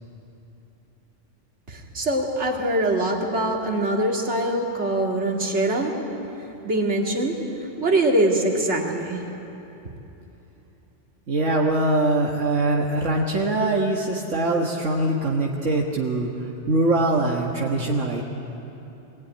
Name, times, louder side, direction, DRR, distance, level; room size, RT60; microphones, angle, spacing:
voice 1, 1.7-5.9 6.6-7.4 7.8-9.2, right 1 dB, 70° right, 0 dB, 2.7 m, -23 dB
voice 2, 11.3-18.2, right 2 dB, 90° right, -1 dB, 1.9 m, -23 dB
23.5 x 18.5 x 9.8 m, 3.0 s
omnidirectional pair, 1.2 m